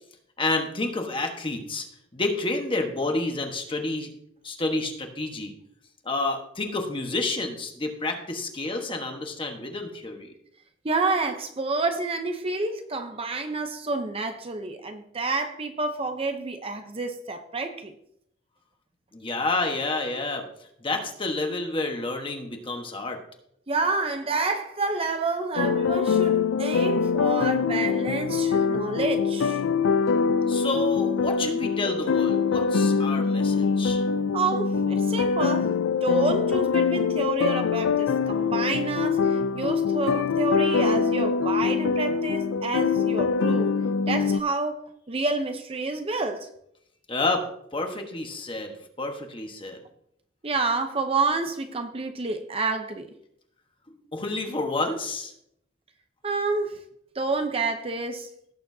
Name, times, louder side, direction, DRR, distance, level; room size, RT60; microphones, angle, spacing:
voice 1, 0.4-1.9 2.1-4.1 4.4-5.5 6.0-10.3 19.1-20.5 20.8-23.2 30.5-34.0 47.1-47.4 47.7-49.8 53.9-55.3, left 2 dB, 25° left, 4 dB, 1.3 m, -29 dB
voice 2, 10.8-17.9 23.7-29.6 34.3-43.7 44.1-46.5 50.4-53.1 56.2-56.8 57.1-58.3, right 3 dB, 30° right, 6 dB, 0.7 m, -29 dB
sound 1, 25.6-44.4, left 5 dB, 80° left, 0.4 m, -24 dB
17.0 x 7.1 x 2.8 m, 0.72 s
head